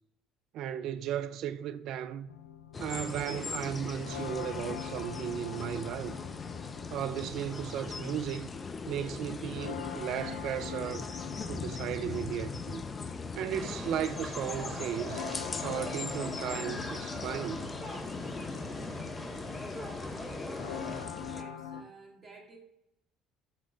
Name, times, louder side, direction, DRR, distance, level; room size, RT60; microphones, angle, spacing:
voice 1, 0.5-2.3 2.8-6.2 6.9-8.5 8.9-11.1 11.5-12.8 13.3-15.3 15.6-17.7, right 10 dB, 60° right, 0.4 m, -35 dB
sound 1, 2.3-21.8, left 8 dB, 90° left, 0.5 m, -45 dB
sound 2, 2.7-21.4, left 4 dB, 30° left, 0.6 m, -40 dB
sound 3, 13.5-21.0, equal, 5° left, 2.5 m, -41 dB
voice 2, 20.9-22.6, right 3 dB, 35° right, 2.1 m, -53 dB
8.1 x 3.7 x 3.4 m
hypercardioid pair, 65°, 0 cm